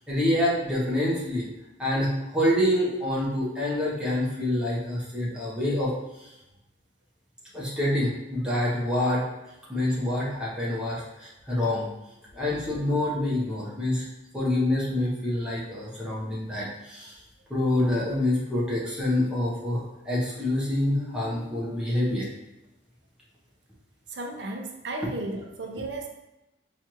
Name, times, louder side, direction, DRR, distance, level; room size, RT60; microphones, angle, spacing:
voice 1, 0.1-1.4 1.8-5.9 6.2-6.3 7.5-9.2 9.7-11.9 12.3-14.1 14.3-17.1 17.5-22.3, left 1 dB, 5° right, -7 dB, 0.8 m, -26 dB
voice 2, 24.1-26.1, right 2 dB, 70° right, 2 dB, 0.5 m, -34 dB
4.4 x 2.4 x 2.9 m, 0.97 s
head